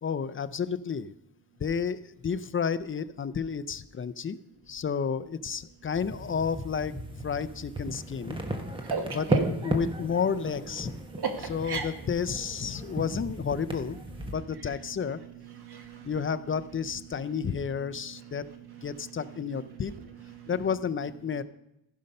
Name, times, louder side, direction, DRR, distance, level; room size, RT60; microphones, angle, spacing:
voice 1, 0.0-1.1 1.6-4.4 4.7-6.9 7.2-8.4 9.1-9.2 9.6-10.9 11.5-14.0 14.3-15.2 16.0-18.5 18.8-19.9 20.5-21.4, left 6 dB, 35° left, 12 dB, 0.4 m, -31 dB
sound 1, 5.9-14.3, right 1 dB, 15° right, 1.1 m, -35 dB
voice 2, 11.2-11.8 14.6-14.8 15.0-15.1 15.4-16.2 19.5-19.7 20.0-20.6, right 5 dB, 80° right, 4 dB, 1.7 m, -34 dB
15.5 x 5.3 x 5.4 m, 0.85 s
wide cardioid pair, 140°, 39 cm